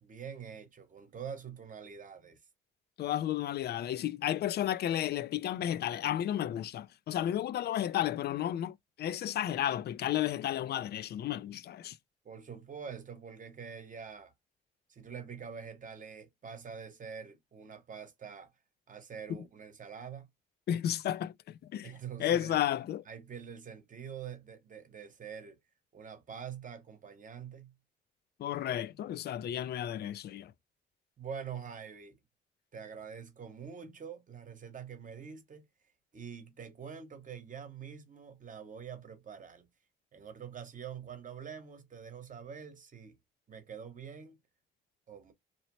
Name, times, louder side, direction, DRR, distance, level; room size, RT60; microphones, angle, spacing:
voice 1, 0.0-2.4 12.2-14.3 14.9-18.5 18.9-20.3 21.8-22.6 23.1-25.6 25.9-27.7 31.2-32.2 32.7-35.6 36.1-39.7 40.1-43.2 43.5-44.4 45.1-45.3, right 7 dB, 40° right, 1.0 m, -45 dB
voice 2, 3.0-12.0 19.3-19.4 20.7-21.9 22.2-23.0 28.4-30.5, left 11 dB, 55° left, 0.4 m, -33 dB
2.8 x 2.0 x 3.0 m
cardioid pair, 90°, 20 cm